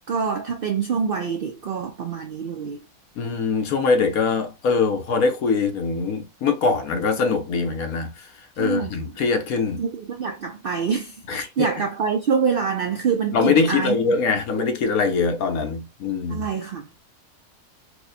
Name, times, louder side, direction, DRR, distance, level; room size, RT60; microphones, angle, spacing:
voice 1, 0.1-2.8 8.6-8.9 9.8-13.9 16.3-16.9, right 6 dB, 70° right, 0.5 m, -25 dB
voice 2, 3.2-8.1 8.6-9.8 11.3-11.7 13.3-16.5, left 4 dB, 75° left, 1.3 m, -22 dB
4.6 x 2.1 x 2.7 m
omnidirectional pair, 1.5 m